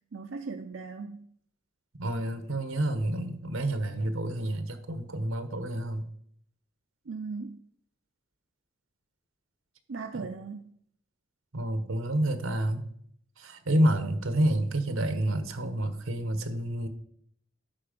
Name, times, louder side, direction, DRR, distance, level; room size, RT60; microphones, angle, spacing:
voice 1, 0.1-1.3 7.1-7.6 9.9-10.7, right 4 dB, 60° right, 0.5 m, -38 dB
voice 2, 2.0-6.1 10.1-10.3 11.5-12.9 13.4-16.9, right 1 dB, 85° right, 1.1 m, -29 dB
11.5 x 4.7 x 5.2 m
head